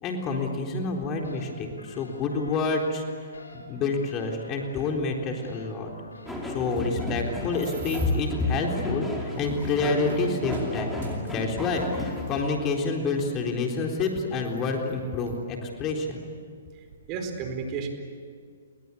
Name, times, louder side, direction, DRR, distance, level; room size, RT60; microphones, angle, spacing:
voice 1, 0.0-3.0 3.5-5.9 6.4-16.2, left 3 dB, 25° left, 1 dB, 3.9 m, -28 dB
sound 1, 1.2-9.6, left 2 dB, 90° left, 5.1 m, -48 dB
sound 2, 6.3-12.8, left 1 dB, 5° left, 4.5 m, -31 dB
sound 3, 7.2-8.3 9.0-12.4 13.2-13.3 13.9-15.4 16.2-16.3 16.6-17.0, right 5 dB, 65° right, 7.7 m, -48 dB
voice 2, 16.7-17.9, right 5 dB, 35° right, 5 dB, 4.5 m, -33 dB
29.5 x 22.0 x 8.5 m, 2.2 s
hypercardioid pair, 130°, 0 cm